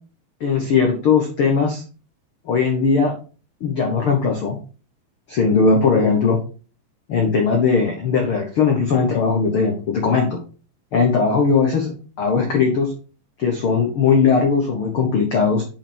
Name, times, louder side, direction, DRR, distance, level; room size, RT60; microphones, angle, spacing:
voice 1, 0.4-1.8 2.4-3.1 3.6-4.6 5.3-6.4 7.1-10.4 10.9-12.9 13.4-15.6, left 5 dB, 90° left, 2 dB, 1.1 m, -19 dB
8.2 x 5.6 x 4.5 m, 0.37 s
omnidirectional pair, 4.5 m